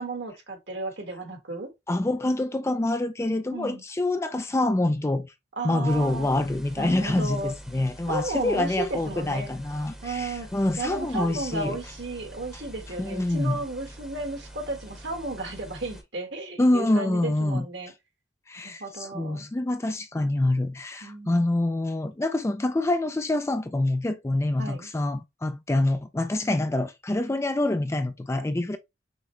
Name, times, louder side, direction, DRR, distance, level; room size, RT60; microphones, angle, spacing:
voice 1, 0.0-1.7 3.5-3.8 5.6-6.3 6.8-7.5 8.1-9.5 10.0-10.5 10.8-17.9 18.6-19.5 21.0-21.5 24.6-24.9, right 2 dB, 65° right, 1.5 m, -33 dB
voice 2, 1.9-5.3 5.6-11.8 13.0-13.6 16.6-17.7 18.5-28.8, left 2 dB, 15° left, 0.3 m, -26 dB
sound 1, 5.9-16.0, right 1 dB, 5° right, 0.9 m, -45 dB
6.2 x 2.2 x 3.2 m
head